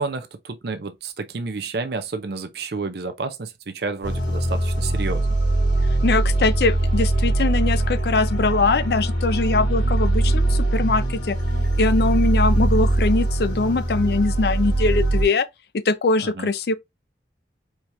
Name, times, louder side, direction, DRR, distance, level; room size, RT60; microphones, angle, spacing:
voice 1, 0.0-5.4 16.2-16.5, right 4 dB, 65° right, 0.5 m, -30 dB
sound 1, 4.0-15.2, right 2 dB, 90° left, 2.5 m, -21 dB
voice 2, 6.0-11.4 11.8-15.5 15.7-16.7, left 3 dB, 65° left, 0.5 m, -22 dB
4.6 x 2.8 x 3.4 m
head